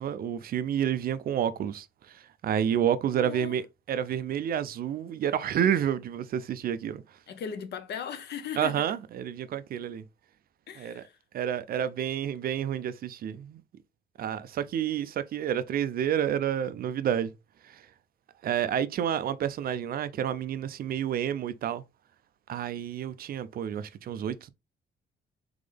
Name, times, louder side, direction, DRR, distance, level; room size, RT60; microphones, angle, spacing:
voice 1, 0.0-3.6 3.9-7.0 8.6-10.0 10.8-11.0 11.3-13.6 14.2-17.3 17.6-17.8 18.4-21.8 22.5-24.5, right 9 dB, 50° right, 0.4 m, -29 dB
voice 2, 3.1-3.6 7.3-8.8 10.7-11.2, left 7 dB, 55° left, 0.7 m, -38 dB
3.8 x 3.7 x 3.3 m
cardioid pair, 160°, 20 cm